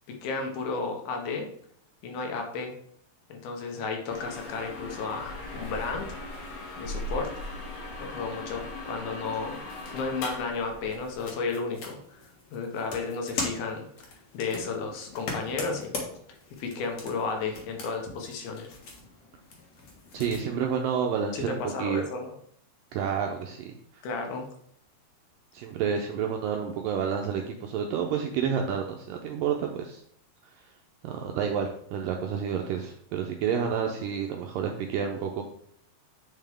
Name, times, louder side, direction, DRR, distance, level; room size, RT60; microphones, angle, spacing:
voice 1, 0.2-1.5 2.0-2.7 3.3-6.2 6.8-7.3 8.0-9.6 9.9-13.9 14.3-15.9 16.6-18.8 21.3-22.3 24.0-24.5, left 4 dB, 75° left, 3 dB, 2.7 m, -33 dB
sound 1, 4.1-11.2, left 2 dB, 90° left, 3.7 m, -39 dB
sound 2, 10.8-20.4, left 3 dB, 55° left, 2.1 m, -40 dB
voice 2, 20.1-22.1 22.9-24.0 25.5-30.0 31.0-35.4, right 7 dB, 90° right, 3 dB, 2.0 m, -29 dB
8.2 x 5.7 x 3.5 m, 0.69 s
omnidirectional pair, 4.6 m